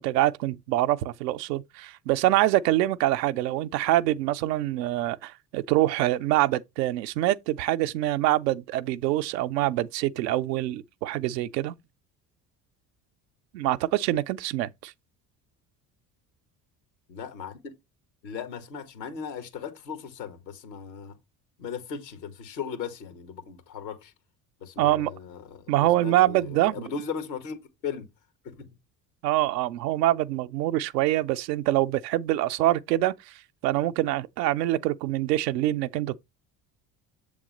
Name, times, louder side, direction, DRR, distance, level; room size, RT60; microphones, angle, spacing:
voice 1, 0.0-11.7 13.5-14.9 24.8-25.1 25.7-26.8 29.2-33.3 33.6-36.2, right 15 dB, 75° right, 0.7 m, -25 dB
voice 2, 17.1-17.7 18.2-21.2 21.6-24.1 24.6-27.6 27.8-28.1 28.4-28.8, left 6 dB, 80° left, 1.5 m, -37 dB
7.5 x 3.6 x 5.1 m
hypercardioid pair, 55°, 50 cm